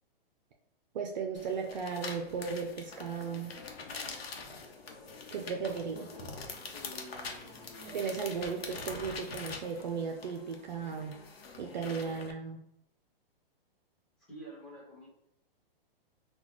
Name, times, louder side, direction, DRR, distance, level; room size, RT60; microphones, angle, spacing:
voice 1, 0.9-3.6 5.3-6.1 7.8-11.2 11.6-12.6, right 5 dB, 50° right, 2 dB, 0.5 m, -36 dB
sound 1, 1.4-12.3, left 4 dB, 90° left, 0.9 m, -44 dB
voice 2, 5.9-6.3 6.7-8.0 14.3-15.1, equal, ahead, -5 dB, 1.2 m, -49 dB
3.9 x 2.3 x 3.0 m, 0.76 s
hypercardioid pair, 155°, 29 cm